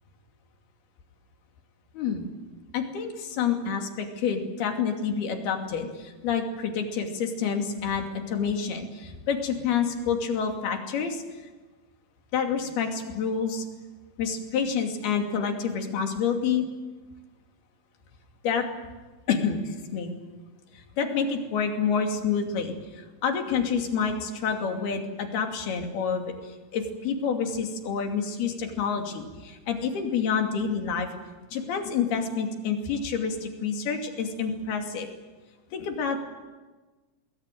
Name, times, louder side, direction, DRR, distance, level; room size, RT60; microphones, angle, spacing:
voice 1, 1.9-2.3 2.7-11.2 12.3-13.7 14.2-16.7 18.4-18.7 19.3-20.1 20.7-31.1 31.5-35.1 35.7-36.2, left 6 dB, 85° left, 3 dB, 4.6 m, -28 dB
27.0 x 21.0 x 9.2 m, 1.2 s
omnidirectional pair, 4.4 m